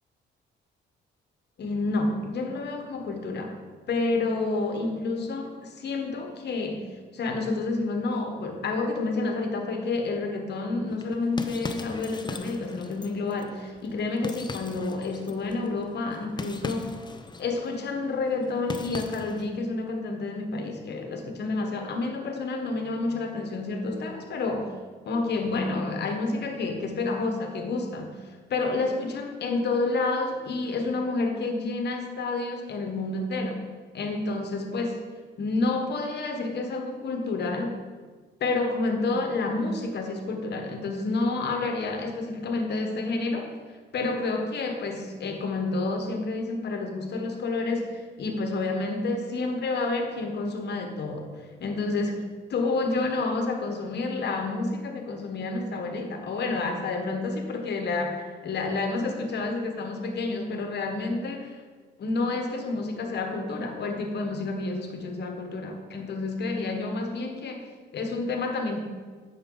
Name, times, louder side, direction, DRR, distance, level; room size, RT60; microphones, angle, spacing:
voice 1, 1.6-3.6 3.9-6.8 7.1-16.9 17.4-24.7 25.0-28.1 28.5-33.6 33.9-35.0 35.4-37.8 38.4-43.5 43.9-61.6 62.0-67.6 67.9-68.8, left 3 dB, 60° left, 4 dB, 1.2 m, -29 dB
sound 1, 10.9-19.5, left 3 dB, 20° left, 0.6 m, -39 dB
8.8 x 6.3 x 3.9 m, 1.4 s
cardioid pair, 90°, 20 cm